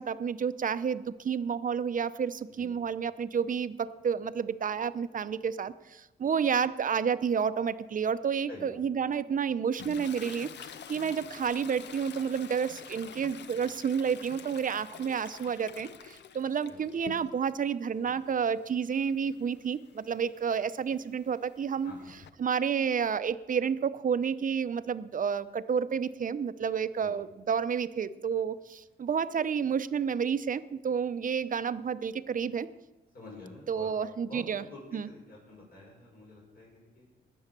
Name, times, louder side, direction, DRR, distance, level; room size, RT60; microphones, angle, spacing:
voice 1, 0.0-10.5 10.9-21.9 22.4-32.7 33.7-34.6 34.9-35.1, right 7 dB, 45° right, 13 dB, 0.7 m, -30 dB
Toilet flush, 9.8-17.6 18.0-22.3, left 7 dB, 70° left, 0.7 m, -48 dB
voice 2, 21.8-22.2 27.0-27.1 33.1-34.0 34.3-37.0, left 2 dB, 55° left, -4 dB, 6.1 m, -48 dB
19.5 x 7.1 x 6.8 m, 1.1 s
cardioid pair, 85°, 19 cm